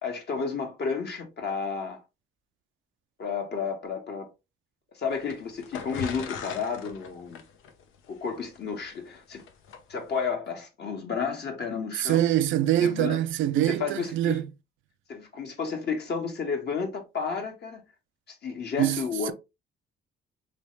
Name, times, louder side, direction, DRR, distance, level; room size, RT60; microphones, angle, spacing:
voice 1, 0.0-2.0 3.2-4.3 4.9-7.4 8.1-9.4 9.9-12.3 12.8-13.2 13.6-14.4 15.1-17.8 18.3-19.3, left 5 dB, 55° left, 1.4 m, -32 dB
sound 1, 5.1-9.8, left 6 dB, 85° left, 0.7 m, -40 dB
voice 2, 12.0-14.4 18.8-19.0 19.3-19.4, right 12 dB, 75° right, 0.4 m, -24 dB
3.3 x 3.3 x 3.1 m
cardioid pair, 90°, 20 cm